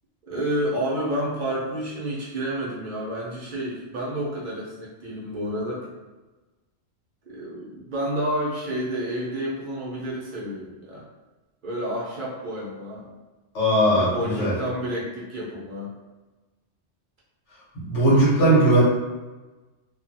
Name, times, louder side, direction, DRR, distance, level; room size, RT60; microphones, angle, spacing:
voice 1, 0.3-5.9 7.3-11.0 11.6-13.2 13.9-15.9 18.4-18.8, right 1 dB, 50° right, -6 dB, 0.7 m, -30 dB
voice 2, 13.5-14.5 17.7-18.8, right 1 dB, 85° left, -8 dB, 1.5 m, -19 dB
2.7 x 2.4 x 2.6 m, 1.2 s
omnidirectional pair, 1.2 m